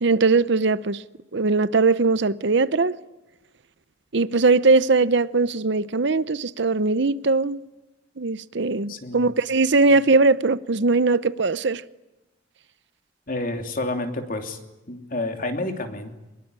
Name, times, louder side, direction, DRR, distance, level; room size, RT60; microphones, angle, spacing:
voice 1, 0.0-1.0 1.3-3.0 4.1-7.6 8.2-11.8, right 3 dB, 60° right, 0.8 m, -20 dB
voice 2, 8.9-9.2 13.3-14.6 14.9-16.2, left 2 dB, 45° left, 3.1 m, -29 dB
24.0 x 21.5 x 9.7 m
head